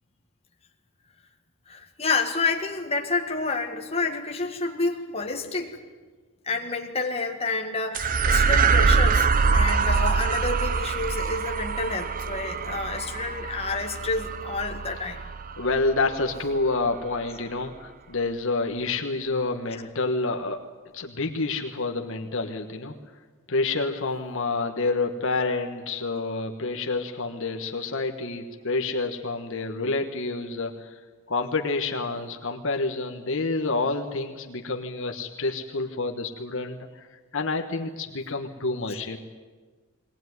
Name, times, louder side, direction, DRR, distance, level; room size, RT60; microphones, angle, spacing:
voice 1, 1.7-5.8 6.4-15.2, left 3 dB, 25° left, 2 dB, 1.8 m, -29 dB
sound 1, 7.9-16.6, right 5 dB, 40° right, 0.7 m, -24 dB
voice 2, 15.6-20.6 20.9-22.9 23.5-31.0 31.3-37.1 37.3-39.2, left 3 dB, 60° left, 3 dB, 1.3 m, -28 dB
21.5 x 18.5 x 9.5 m, 1.4 s
head